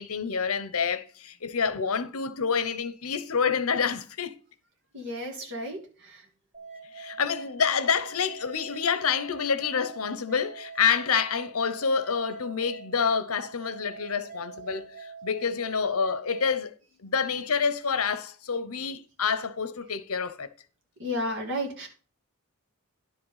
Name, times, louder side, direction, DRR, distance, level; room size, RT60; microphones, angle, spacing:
voice 1, 0.0-4.4 6.9-16.7 17.0-20.5, left 6 dB, 75° left, 0.9 m, -28 dB
voice 2, 4.9-6.3 21.0-21.9, equal, 55° right, 2.6 m, -33 dB
sound 1, 6.5-16.6, right 5 dB, 40° right, 2.4 m, -44 dB
10.5 x 5.4 x 5.6 m
head